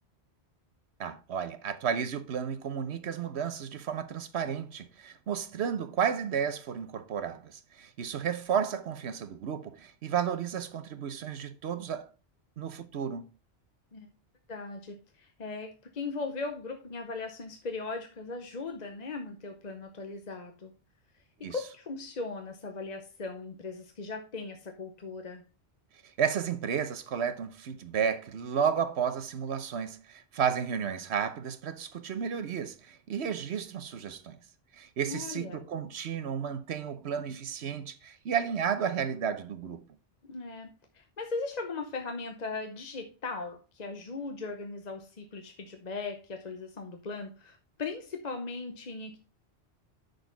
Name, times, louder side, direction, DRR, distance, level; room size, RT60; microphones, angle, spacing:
voice 1, 1.0-12.1 12.6-13.2 21.4-21.5 26.2-34.4 34.7-39.8, right 7 dB, 80° right, 1.1 m, -32 dB
voice 2, 14.5-20.7 21.4-25.4 35.0-35.6 40.3-40.7 40.9-49.2, left 3 dB, 45° left, 0.9 m, -38 dB
8.1 x 6.6 x 3.9 m
omnidirectional pair, 1.1 m